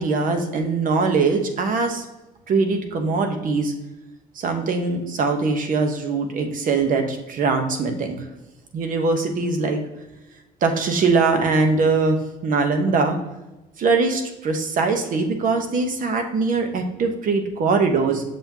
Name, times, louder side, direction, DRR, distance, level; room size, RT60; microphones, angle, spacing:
voice 1, 0.0-2.0 2.5-3.7 4.4-8.2 8.7-9.8 10.6-12.2 12.4-13.2 13.8-18.2, right 4 dB, 55° right, 5 dB, 1.1 m, -21 dB
6.6 x 5.9 x 2.9 m, 1.0 s
cardioid pair, 110°, 17 cm